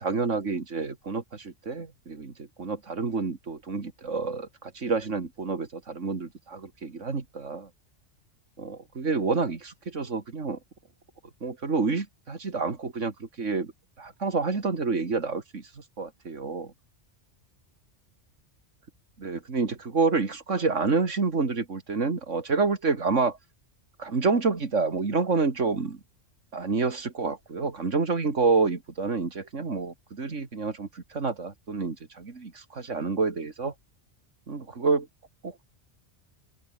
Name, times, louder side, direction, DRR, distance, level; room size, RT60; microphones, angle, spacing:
voice 1, 0.0-7.7 8.6-10.6 11.4-13.7 14.0-16.7 19.2-23.4 24.0-26.0 26.5-33.7 34.5-35.1 35.4-35.7, right 4 dB, 85° right, 2.8 m, -28 dB
open air
omnidirectional pair, 1.2 m